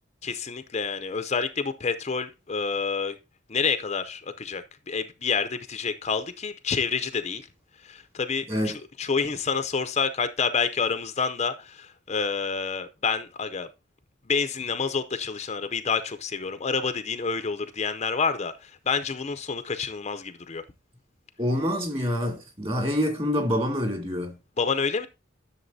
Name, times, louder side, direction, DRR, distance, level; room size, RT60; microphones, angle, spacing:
voice 1, 0.2-3.2 3.5-7.4 7.8-13.7 14.3-20.6 24.6-25.1, left 5 dB, 35° left, 0.5 m, -28 dB
voice 2, 21.4-24.4, equal, 30° right, 2.2 m, -26 dB
11.0 x 6.7 x 2.6 m
head